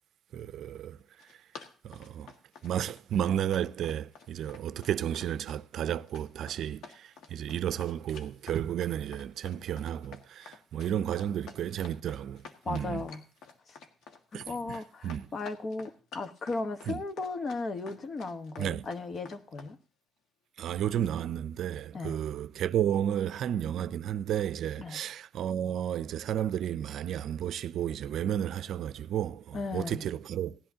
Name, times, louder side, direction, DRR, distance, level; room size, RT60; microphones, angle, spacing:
voice 1, 0.3-1.0 1.3-1.4 1.8-2.3 2.6-13.0 14.3-15.3 16.9-17.0 18.6-18.9 20.6-30.6, right 10 dB, 75° right, 0.4 m, -32 dB
Run, 1.0-19.7, left 5 dB, 80° left, 1.7 m, -50 dB
voice 2, 12.6-13.2 13.7-13.8 14.3-19.8 21.9-22.2 24.8-25.0 29.5-30.0, left 3 dB, 45° left, 1.2 m, -36 dB
17.5 x 11.0 x 2.8 m
cardioid pair, 90°, 0 cm